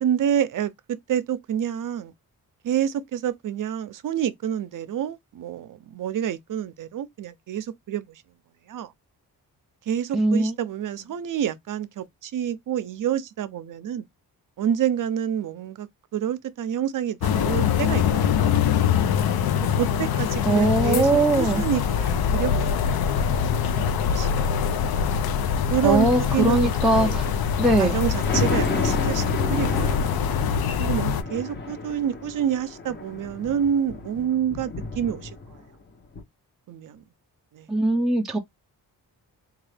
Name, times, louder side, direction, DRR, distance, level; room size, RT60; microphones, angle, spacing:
voice 1, 0.0-2.1 2.6-8.2 8.7-8.9 9.9-14.1 14.6-18.6 19.8-23.0 23.4-24.8 25.7-26.1 26.3-27.2 27.8-30.1 30.8-35.3 36.7-37.0 37.5-37.7, right 9 dB, 60° right, 0.5 m, -28 dB
voice 2, 10.1-10.5 20.5-21.6 25.8-27.3 27.6-28.0 37.7-38.4, right 2 dB, ahead, 0.4 m, -21 dB
sound 1, 17.2-31.2, left 7 dB, 80° left, 0.5 m, -23 dB
Thunder, 27.6-35.7 36.1-36.2, left 3 dB, 30° left, 0.7 m, -32 dB
3.6 x 2.4 x 3.3 m
wide cardioid pair, 135°, 37 cm